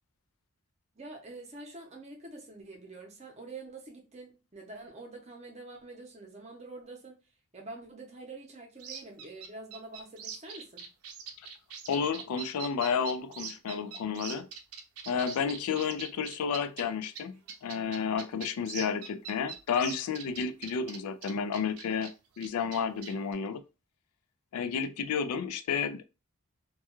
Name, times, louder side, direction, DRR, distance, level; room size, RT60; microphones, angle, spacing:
voice 1, 0.9-7.3 7.5-10.9, right 2 dB, 30° right, 0.7 m, -46 dB
sound 1, 8.8-16.8 17.2-17.3 17.5-22.1 22.4-23.3, right 7 dB, 85° right, 0.5 m, -42 dB
voice 2, 11.9-14.5 15.1-22.1 22.4-23.6 24.5-26.1, left 6 dB, 85° left, 0.3 m, -31 dB
2.3 x 2.2 x 2.9 m
head